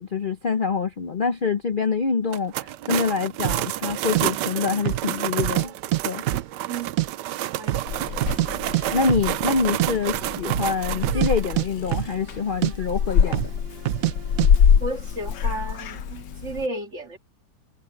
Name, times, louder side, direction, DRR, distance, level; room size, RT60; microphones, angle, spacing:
voice 1, 0.0-5.7 6.0-6.2 8.9-13.5, left 5 dB, 40° left, 0.7 m, -25 dB
sound 1, 2.3-11.5, right 14 dB, 85° right, 1.2 m, -30 dB
sound 2, 3.4-3.7 4.1-4.2 4.8-5.1 5.4-6.0 6.3-7.1 7.3-7.4 7.7-8.5 8.7-8.8 9.1-9.3 9.6-9.9 10.4-10.7 11.0-12.4 12.6-12.7 13.3-13.6 13.9-14.1 14.4-14.5, right 14 dB, 65° right, 1.0 m, -25 dB
voice 2, 6.7-8.3 14.8-17.2, right 2 dB, 45° right, 2.2 m, -34 dB
Purr / Meow, 7.9-16.7, left 7 dB, 80° left, 1.7 m, -25 dB
omnidirectional pair, 1.8 m